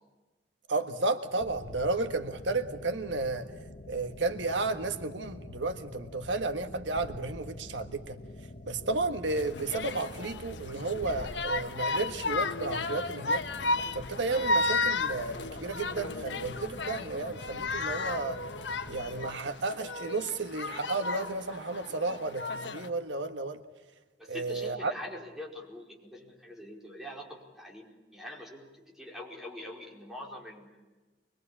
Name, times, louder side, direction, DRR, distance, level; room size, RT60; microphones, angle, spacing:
voice 1, 0.7-3.5 3.9-8.2 8.6-13.4 13.9-18.4 18.9-23.6 24.3-24.9, right 3 dB, 85° right, 8 dB, 1.5 m, -33 dB
sound 1, 1.4-19.3, left 1 dB, 45° left, 1.2 m, -46 dB
sound 2, 9.3-22.9, left 3 dB, 75° left, 1.3 m, -34 dB
voice 2, 24.2-30.8, left 1 dB, ahead, -2 dB, 4.9 m, -44 dB
24.5 x 22.0 x 8.6 m, 1.2 s
head